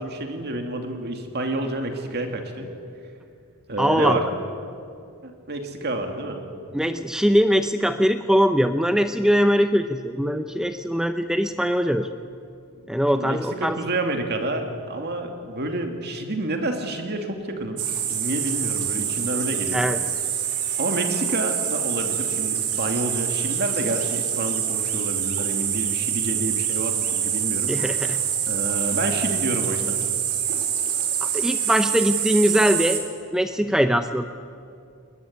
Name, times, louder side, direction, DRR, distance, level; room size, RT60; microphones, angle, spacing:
voice 1, 0.0-2.7 3.7-4.2 5.2-6.4 13.1-17.8 18.1-19.9 20.8-27.7 28.5-29.9, right 1 dB, 45° right, 4 dB, 2.6 m, -29 dB
voice 2, 3.8-4.2 6.7-12.1 12.9-13.8 19.7-20.0 27.7-28.2 31.2-33.0 33.3-34.2, equal, 5° right, 8 dB, 0.6 m, -21 dB
sound 1, 17.8-33.0, right 9 dB, 90° right, 3.0 m, -26 dB
21.0 x 20.0 x 9.8 m, 2.4 s
head